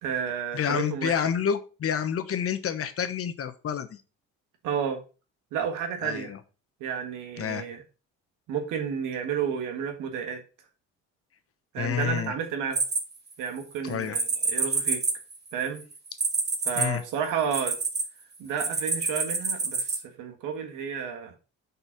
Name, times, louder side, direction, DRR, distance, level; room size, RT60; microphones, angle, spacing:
voice 1, 0.0-1.1 4.6-5.0 5.5-6.3 6.8-7.8 8.5-10.4 11.7-12.8 13.4-15.0 15.5-15.8 16.6-17.7 18.4-21.3, right 7 dB, 80° right, 5 dB, 1.7 m, -31 dB
voice 2, 0.5-4.0 6.0-6.4 7.4-7.7 11.8-12.3 13.8-14.2 16.8-17.0, left 8 dB, 45° left, 10 dB, 1.0 m, -29 dB
sound 1, 12.7-13.6 14.1-18.0 18.6-20.0, right 4 dB, 35° right, 1.6 m, -27 dB
5.4 x 4.1 x 5.9 m, 0.33 s
supercardioid pair, 80°, 31 cm